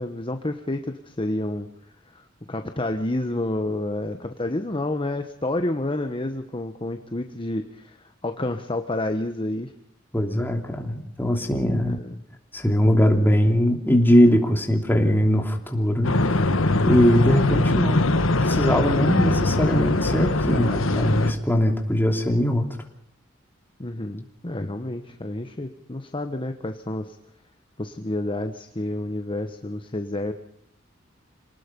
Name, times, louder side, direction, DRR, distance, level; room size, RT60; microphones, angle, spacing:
voice 1, 0.0-1.7 2.1-8.0 8.2-9.7 11.9-12.2 23.8-27.1 27.8-30.3, left 1 dB, 25° left, 7 dB, 1.2 m, -29 dB
voice 2, 10.1-12.0 12.5-16.5 16.8-18.1 18.4-22.7, equal, 10° left, 3 dB, 3.0 m, -21 dB
sound 1, 16.0-21.3, left 2 dB, 85° left, 1.6 m, -21 dB
27.5 x 19.0 x 5.4 m, 0.68 s
head